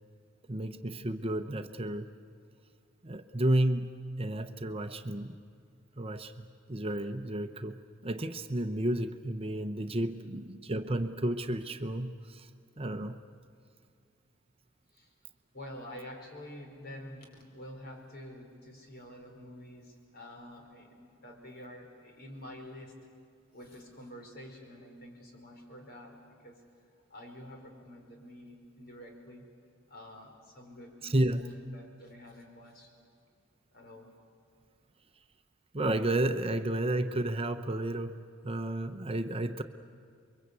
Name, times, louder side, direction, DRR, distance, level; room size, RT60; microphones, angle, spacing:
voice 1, 0.5-2.1 3.0-5.4 6.0-12.5 12.8-13.2 31.0-31.5 35.7-39.6, right 1 dB, 30° right, 8 dB, 0.8 m, -32 dB
voice 2, 15.5-23.0 23.5-26.6 27.1-29.5 29.9-32.9 33.7-34.1, left 1 dB, 55° left, 2 dB, 4.9 m, -48 dB
29.5 x 23.0 x 8.3 m, 2.3 s
head